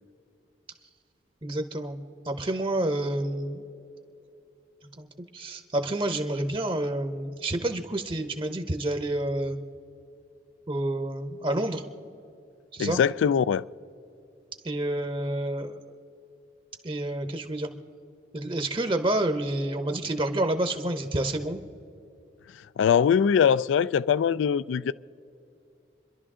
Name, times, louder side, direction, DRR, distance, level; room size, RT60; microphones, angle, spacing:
voice 1, 1.4-2.0 2.2-3.6 5.0-5.1 5.3-9.6 10.7-11.8 12.7-13.0 14.6-15.8 16.8-17.7 18.3-21.6, right 1 dB, 25° right, 0.7 m, -29 dB
voice 2, 12.8-13.7 22.8-24.9, left 7 dB, 85° left, 0.3 m, -22 dB
28.0 x 11.5 x 3.7 m
head